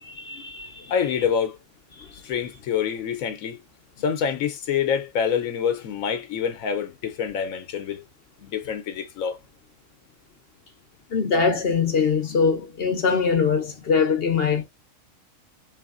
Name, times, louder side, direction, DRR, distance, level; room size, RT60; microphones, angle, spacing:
voice 1, 0.0-0.9 2.0-2.1 11.1-14.6, left 5 dB, 55° left, 0.8 m, -23 dB
voice 2, 0.9-1.6 2.2-3.6 4.0-8.0 8.4-9.4, left 7 dB, 80° left, 1.0 m, -26 dB
4.1 x 3.2 x 2.4 m
omnidirectional pair, 1.4 m